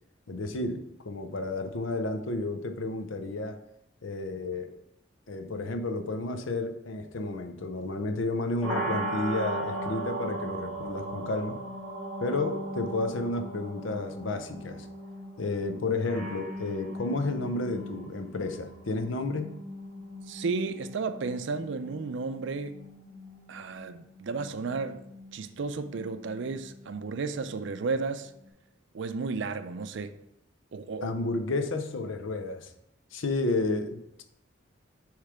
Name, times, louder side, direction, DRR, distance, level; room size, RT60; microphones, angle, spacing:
voice 1, 0.3-3.6 4.0-4.7 5.3-11.6 12.2-14.9 15.4-19.5 31.0-32.7 33.1-34.2, left 2 dB, 75° left, 0.7 m, -31 dB
sound 1, 8.6-28.4, right 1 dB, 5° left, 1.6 m, -39 dB
voice 2, 20.3-22.8 23.5-25.1 25.3-28.3 28.9-30.1 30.7-31.1, right 4 dB, 65° right, 0.4 m, -33 dB
6.6 x 3.2 x 4.9 m
head